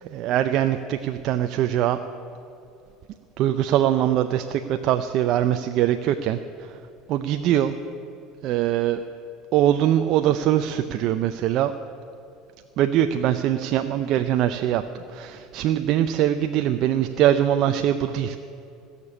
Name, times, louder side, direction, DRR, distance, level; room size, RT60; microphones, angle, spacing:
voice 1, 0.0-2.0 3.4-6.8 7.1-7.7 8.4-9.0 9.5-11.7 12.8-18.4, right 11 dB, 55° right, 8 dB, 0.5 m, -22 dB
16.5 x 6.8 x 9.8 m, 2.7 s
supercardioid pair, 120°, 0 cm